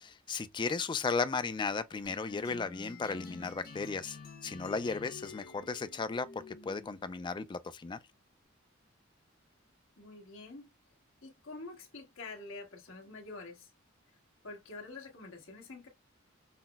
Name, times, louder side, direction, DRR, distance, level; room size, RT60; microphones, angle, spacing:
voice 1, 0.0-4.2 4.4-8.0, left 4 dB, 25° left, 0.3 m, -35 dB
sound 1, 2.0-7.2, left 4 dB, 50° left, 1.0 m, -49 dB
voice 2, 10.0-10.7 11.2-13.7 14.4-15.9, left 3 dB, 80° left, 1.3 m, -47 dB
5.6 x 2.0 x 2.2 m
head